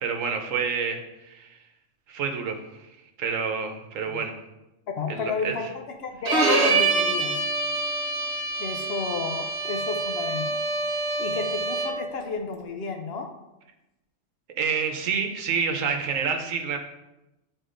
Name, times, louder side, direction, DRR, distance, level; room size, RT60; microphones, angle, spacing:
voice 1, 0.0-1.0 1.3-1.6 2.1-2.9 3.2-4.3 5.1-5.7 14.6-16.8, right 6 dB, 90° right, 4 dB, 1.2 m, -28 dB
voice 2, 5.0-7.5 8.6-10.6 11.2-13.3, left 4 dB, 60° left, 3 dB, 0.9 m, -32 dB
Bowed string instrument, 6.3-12.1, right 3 dB, 50° right, 1.1 m, -26 dB
9.7 x 4.2 x 2.5 m, 0.96 s
omnidirectional pair, 1.3 m